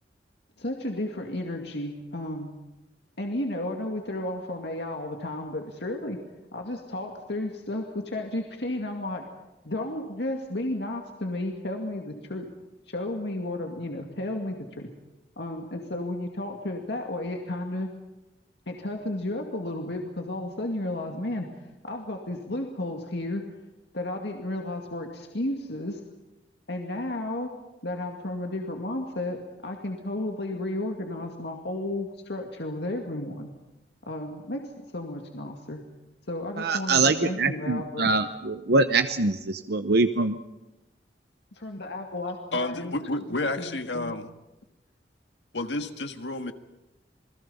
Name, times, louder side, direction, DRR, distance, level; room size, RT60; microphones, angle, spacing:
voice 1, 0.6-2.5 3.2-6.2 6.5-9.2 9.6-12.5 12.9-14.9 15.4-17.9 18.7-21.5 21.8-23.4 23.9-26.0 26.7-27.5 27.8-33.5 34.1-34.6 34.9-35.8 36.3-38.1 41.5-43.0 43.6-44.2, left 1 dB, 70° left, 2 dB, 2.2 m, -33 dB
voice 2, 36.6-40.4, right 3 dB, 65° right, 8 dB, 0.9 m, -24 dB
voice 3, 42.5-44.3 45.5-46.5, left 2 dB, 90° left, 7 dB, 1.7 m, -30 dB
28.5 x 21.0 x 5.6 m, 0.98 s
head